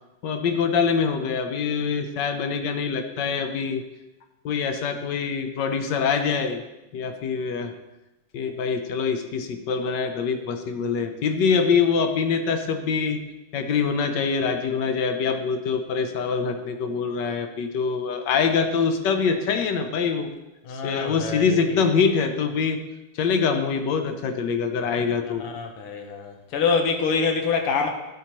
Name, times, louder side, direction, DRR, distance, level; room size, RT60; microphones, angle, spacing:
voice 1, 0.2-3.8 4.4-6.6 6.9-7.7 8.3-13.3 13.5-20.3 20.8-22.9 23.1-25.4, left 5 dB, 65° left, 7 dB, 1.2 m, -24 dB
voice 2, 20.7-21.8 25.3-27.9, left 5 dB, 85° left, 4 dB, 2.0 m, -26 dB
11.0 x 8.4 x 3.0 m, 0.98 s
omnidirectional pair, 2.4 m